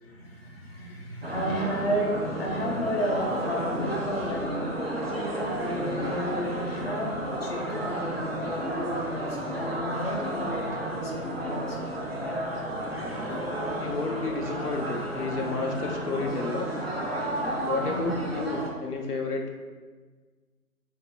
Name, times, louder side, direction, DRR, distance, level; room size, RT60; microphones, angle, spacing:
voice 1, 0.0-4.7 5.5-11.8 13.5-13.6 17.8-18.1, equal, 40° left, -2 dB, 0.8 m, -32 dB
sound 1, 1.2-18.7, right 1 dB, 40° right, 0.6 m, -32 dB
voice 2, 13.8-16.7 17.6-19.6, left 3 dB, 80° left, 2 dB, 0.7 m, -31 dB
7.2 x 2.8 x 2.2 m, 1.4 s
figure-of-eight pair, 155°, 46 cm